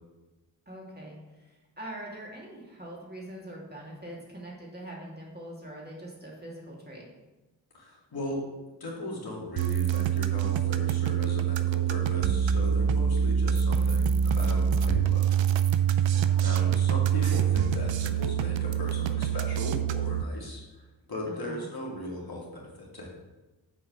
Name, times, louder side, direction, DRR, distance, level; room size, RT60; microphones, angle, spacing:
voice 1, 0.7-7.1 16.1-16.8 21.3-21.7, right 1 dB, 20° right, -4 dB, 2.7 m, -43 dB
voice 2, 7.7-8.5 8.8-15.2 15.8-23.1, left 1 dB, 55° left, -4 dB, 2.4 m, -38 dB
sound 1, 9.6-20.2, right 8 dB, 80° right, 0.6 m, -25 dB
sound 2, 13.6-14.1 14.4-14.8 17.2-17.6, left 2 dB, 85° left, 2.0 m, -49 dB
7.3 x 4.6 x 5.9 m, 1.1 s
cardioid pair, 50°, 44 cm